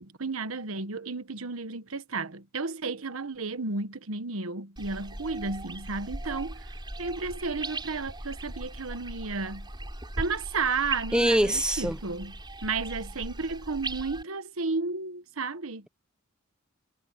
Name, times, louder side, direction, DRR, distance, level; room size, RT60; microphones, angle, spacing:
voice 1, 0.0-6.7 7.0-9.7 10.2-12.3 12.6-15.9, right 4 dB, 90° right, 1.2 m, -33 dB
sound 1, 4.8-14.2, right 2 dB, 20° right, 6.2 m, -38 dB
voice 2, 11.1-12.0, equal, 5° right, 1.1 m, -23 dB
head